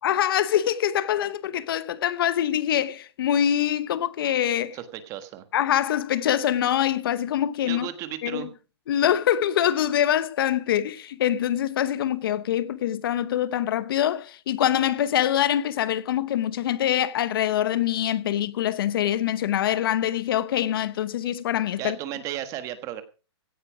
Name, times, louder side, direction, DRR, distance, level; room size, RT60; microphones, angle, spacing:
voice 1, 0.0-4.8 5.5-7.9 8.2-8.5 8.9-22.0, left 11 dB, 55° left, 0.9 m, -24 dB
voice 2, 4.7-5.4 7.7-8.5 21.8-23.0, right 11 dB, 20° right, 1.4 m, -34 dB
16.5 x 9.6 x 5.0 m
hypercardioid pair, 165°, 15 cm